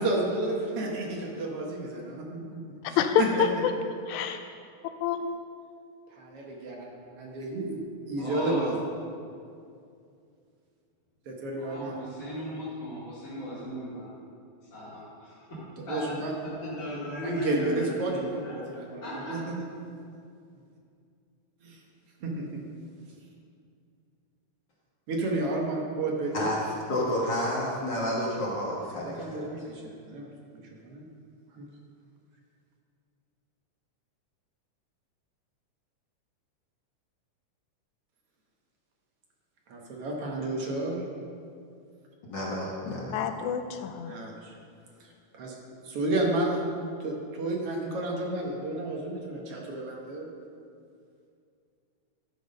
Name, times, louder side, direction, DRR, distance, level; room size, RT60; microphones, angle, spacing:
voice 1, 0.0-2.6 2.9-3.4 6.1-8.8 9.1-9.2 11.3-12.0 15.9-16.3 17.2-19.6 21.6-21.8 22.2-22.6 25.1-26.5 28.9-31.1 31.5-31.7 39.7-41.0 44.1-44.6 45.0-45.6 45.8-46.6 47.0-50.3, right 2 dB, 60° right, -1 dB, 1.9 m, -32 dB
voice 2, 3.0-3.5 4.1-4.4 5.0-5.4 43.1-44.1, left 8 dB, 80° left, 7 dB, 2.0 m, -27 dB
voice 3, 8.2-8.7 11.5-14.1 14.7-16.2 16.4-18.6 19.0-19.3, equal, 30° left, -12 dB, 2.4 m, -36 dB
voice 4, 26.9-29.4 42.2-43.2, left 1 dB, 50° left, -4 dB, 1.6 m, -30 dB
12.5 x 6.0 x 5.2 m, 2.4 s
omnidirectional pair, 3.5 m